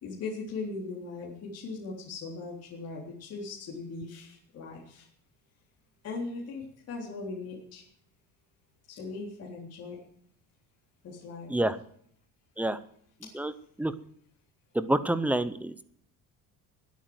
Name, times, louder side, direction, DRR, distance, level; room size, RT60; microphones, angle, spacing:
voice 1, 0.0-5.1 6.0-7.8 8.9-10.0 11.0-11.5, left 3 dB, 40° left, -2 dB, 3.8 m, -39 dB
voice 2, 14.7-15.8, right 1 dB, 5° right, 13 dB, 0.6 m, -27 dB
20.0 x 8.4 x 7.9 m, 0.64 s
cardioid pair, 175°, 38 cm